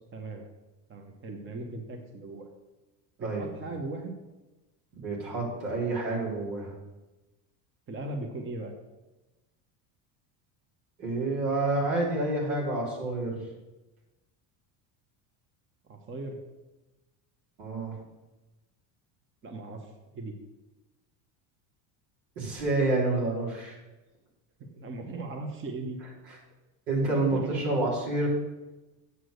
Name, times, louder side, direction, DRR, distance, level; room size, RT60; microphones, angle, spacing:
voice 1, 0.1-0.4 0.9-2.5 3.2-4.1 7.9-8.7 15.9-16.4 19.4-19.9 20.1-20.4 24.6-26.0 27.3-27.7, right 2 dB, 25° right, 4 dB, 1.1 m, -38 dB
voice 2, 4.9-6.7 11.0-13.4 17.6-18.0 22.4-23.8 26.9-28.3, right 2 dB, 85° right, -2 dB, 3.6 m, -28 dB
8.2 x 6.1 x 6.4 m, 1.1 s
supercardioid pair, 125°, 44 cm